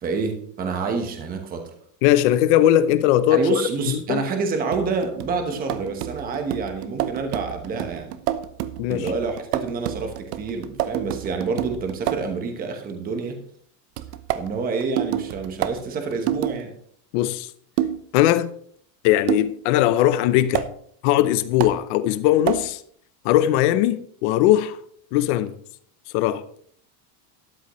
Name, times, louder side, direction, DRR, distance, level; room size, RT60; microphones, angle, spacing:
voice 1, 0.0-1.6 3.3-8.2 8.9-13.4 14.3-16.7, right 4 dB, 20° right, 1.1 m, -28 dB
voice 2, 2.0-3.6 3.9-4.2 8.8-9.1 17.1-17.5 18.1-18.5 19.0-20.7 21.0-22.8 23.2-24.8 25.1-25.6 26.1-26.4, left 13 dB, 45° left, 0.7 m, -19 dB
sound 1, 4.7-12.4 14.0-16.6 17.8-18.1 19.3-19.6 20.5-20.7 21.6-21.8 22.5-22.7, right 12 dB, 70° right, 0.9 m, -29 dB
13.0 x 11.0 x 3.1 m
supercardioid pair, 175°, 49 cm